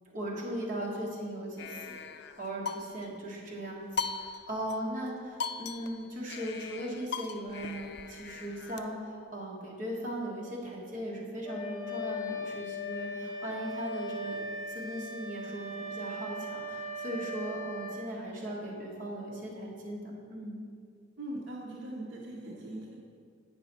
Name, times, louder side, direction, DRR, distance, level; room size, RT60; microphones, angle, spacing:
voice 1, 0.1-2.0 2.4-14.4 14.7-20.6, equal, 45° right, -4 dB, 1.7 m, -38 dB
sound 1, 1.6-3.2 4.0-4.8 5.1-5.2 5.4-8.8, left 5 dB, 60° left, 0.4 m, -39 dB
Wind instrument woodwind instrument, 11.4-18.0, left 1 dB, 15° left, 1.1 m, -38 dB
voice 2, 21.2-23.0, right 1 dB, 80° right, -2 dB, 0.8 m, -41 dB
8.9 x 5.4 x 4.1 m, 2.2 s
head